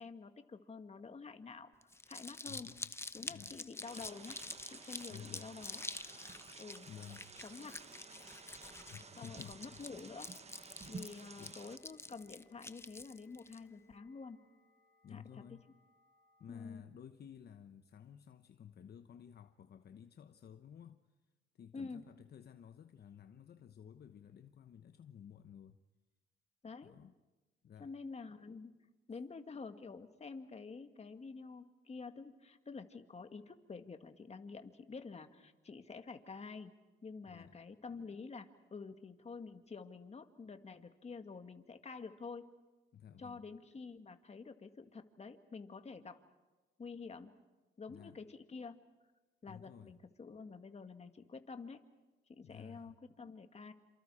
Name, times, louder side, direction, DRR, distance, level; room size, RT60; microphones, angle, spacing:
voice 1, 0.0-1.7 2.1-2.7 3.1-4.4 4.7-5.8 6.6-6.9 7.4-7.8 9.2-10.3 10.9-14.4 15.1-15.2 16.5-16.8 21.7-22.0 26.6-26.9 27.8-28.7 29.1-36.7 37.0-42.5 43.2-46.2 46.8-47.3 47.8-48.8 49.4-51.8 52.3-53.7, left 4 dB, 35° left, 2.1 m, -49 dB
Crumpling crinkling, 1.8-13.6, left 2 dB, 10° left, 0.8 m, -48 dB
voice 2, 2.4-2.9 3.3-3.6 5.1-5.5 6.8-7.3 8.9-9.8 11.4-11.6 15.0-15.6 16.4-21.0 21.5-25.8 26.8-27.1 27.6-27.9 37.2-37.6 42.9-43.4 47.9-48.2 49.5-50.0 52.4-52.9, left 8 dB, 55° left, 1.0 m, -54 dB
sound 1, 3.8-11.8, right 4 dB, 35° right, 1.4 m, -53 dB
sound 2, 7.9-16.6, left 5 dB, 75° left, 4.0 m, -72 dB
28.5 x 27.0 x 4.9 m
cardioid pair, 90°, 20 cm